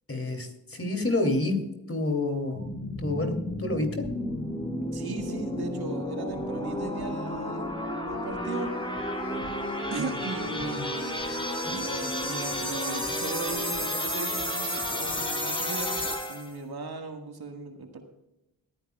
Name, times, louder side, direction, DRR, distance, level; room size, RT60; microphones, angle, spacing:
voice 1, 0.1-1.6 1.9-2.7 3.0-4.1 10.0-10.1 10.6-10.9 11.6-11.8, left 2 dB, 30° left, 6 dB, 2.9 m, -29 dB
sound 1, 2.5-16.5, left 1 dB, 10° left, 3.3 m, -32 dB
voice 2, 4.9-7.7 8.1-8.7 9.9-11.4 11.6-15.9 16.3-18.0, right 4 dB, 55° right, 4 dB, 1.8 m, -38 dB
21.5 x 9.8 x 2.3 m, 0.92 s
supercardioid pair, 45°, 46 cm